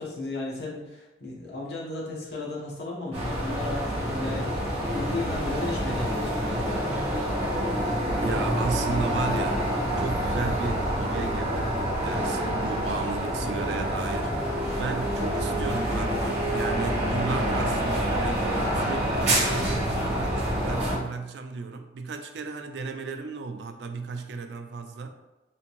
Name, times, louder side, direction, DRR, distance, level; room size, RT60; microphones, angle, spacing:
voice 1, 0.0-6.9, left 2 dB, 70° left, -4 dB, 1.0 m, -34 dB
sound 1, 3.1-21.0, equal, 35° right, 1.2 m, -27 dB
voice 2, 8.2-9.6 10.0-14.4 14.8-25.1, right 4 dB, 70° right, 7 dB, 0.3 m, -34 dB
3.4 x 2.7 x 3.0 m, 1.0 s
head